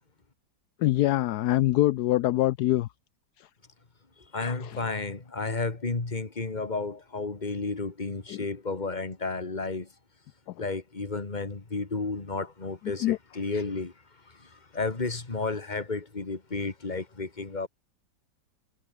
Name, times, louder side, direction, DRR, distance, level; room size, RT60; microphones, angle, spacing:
voice 1, 0.8-2.9 4.4-4.7 13.0-13.2, left 15 dB, 75° left, 1.0 m, -24 dB
voice 2, 4.3-9.9 10.6-13.9 14.3-17.7, left 3 dB, 25° left, 2.2 m, -32 dB
omnidirectional pair, 2.1 m